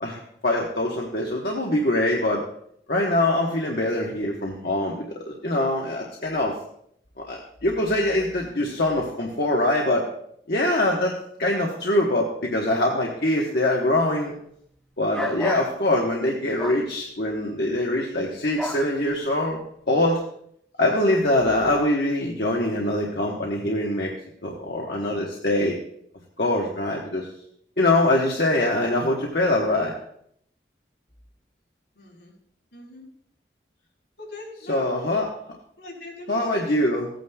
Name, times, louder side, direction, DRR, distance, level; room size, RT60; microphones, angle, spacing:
voice 1, 0.0-2.4 2.9-6.6 7.2-10.1 10.5-14.3 15.0-19.6 19.9-20.2 20.8-24.1 24.4-25.7 26.4-27.3 27.8-30.0 34.7-35.3 36.3-37.1, left 1 dB, 65° left, -1 dB, 1.2 m, -23 dB
sound 1, 15.1-15.7 16.6-16.8 18.6-18.9, equal, 5° left, 0.6 m, -31 dB
voice 2, 31.9-32.3 32.7-33.0 34.2-35.1 35.8-36.8, left 2 dB, 85° left, -3 dB, 4.1 m, -41 dB
15.5 x 9.1 x 2.3 m, 0.69 s
head